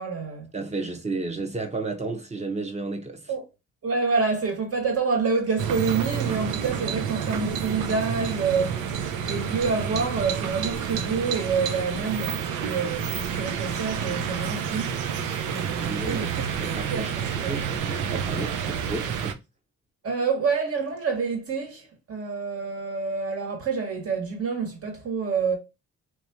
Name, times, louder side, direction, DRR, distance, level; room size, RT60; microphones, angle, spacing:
voice 1, 0.0-0.5 3.3-3.4 3.8-14.9 15.5-17.6 20.0-25.6, right 5 dB, 50° right, 1.7 m, -28 dB
voice 2, 0.5-3.3 15.6-19.4, right 3 dB, 20° right, 1.0 m, -33 dB
sound 1, 5.6-19.3, right 7 dB, 85° right, 0.7 m, -29 dB
3.6 x 2.9 x 2.8 m
cardioid pair, 90°, 30 cm